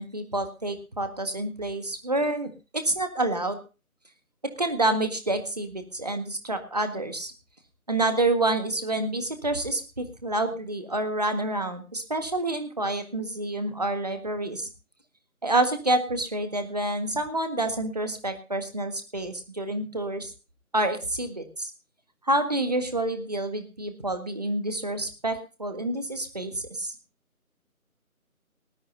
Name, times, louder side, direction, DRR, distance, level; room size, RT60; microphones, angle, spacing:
voice 1, 0.0-3.6 4.6-7.3 7.9-14.7 15.4-20.3 20.7-21.7 22.2-26.9, right 2 dB, 25° right, 8 dB, 1.7 m, -28 dB
19.5 x 13.0 x 2.7 m, 0.31 s
figure-of-eight pair, 165°, 44 cm